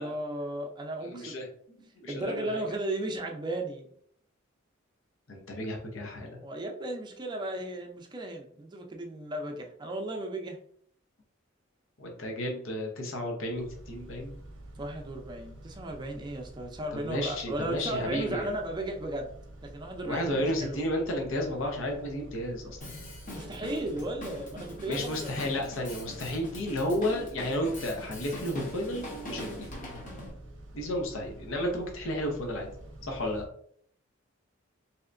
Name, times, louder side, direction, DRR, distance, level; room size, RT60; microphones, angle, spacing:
voice 1, 0.0-1.3 2.1-3.9 6.4-10.6 14.8-19.3 19.6-20.8 23.3-25.6, right 1 dB, 20° right, 2 dB, 0.5 m, -35 dB
voice 2, 1.0-1.5 1.8-2.6 5.3-6.4 12.0-14.4 17.0-18.5 20.0-22.8 24.9-29.7 30.7-32.7 33.0-33.5, left 1 dB, 80° left, 1 dB, 0.8 m, -32 dB
Car / Idling / Accelerating revving vroom, 13.5-33.5, right 1 dB, 65° right, 0.6 m, -48 dB
Drum kit, 22.8-30.3, left 1 dB, 40° left, 0.8 m, -42 dB
3.3 x 2.8 x 2.5 m, 0.63 s
head